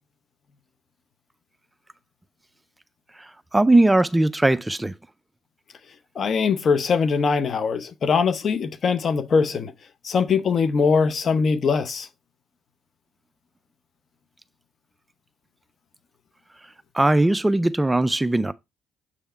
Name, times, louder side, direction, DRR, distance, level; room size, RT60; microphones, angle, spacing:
voice 1, 3.1-4.9 16.9-18.5, right 2 dB, 15° right, 0.4 m, -19 dB
voice 2, 6.1-9.7 10.0-12.1, left 5 dB, 55° left, 0.8 m, -22 dB
7.3 x 3.5 x 4.4 m
supercardioid pair, 55°, 0 cm